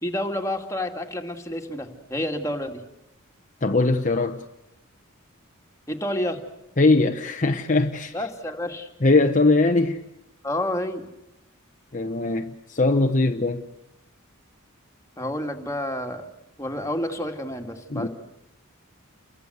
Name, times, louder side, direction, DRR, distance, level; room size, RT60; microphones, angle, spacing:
voice 1, 0.0-2.8 5.9-6.4 8.1-8.9 10.4-11.1 15.2-16.2 16.6-18.1, left 1 dB, 15° left, 2.5 m, -29 dB
voice 2, 3.6-4.4 6.8-8.2 9.0-10.0 11.9-13.7 17.9-18.1, left 2 dB, 35° left, 1.0 m, -21 dB
30.0 x 23.0 x 8.2 m
head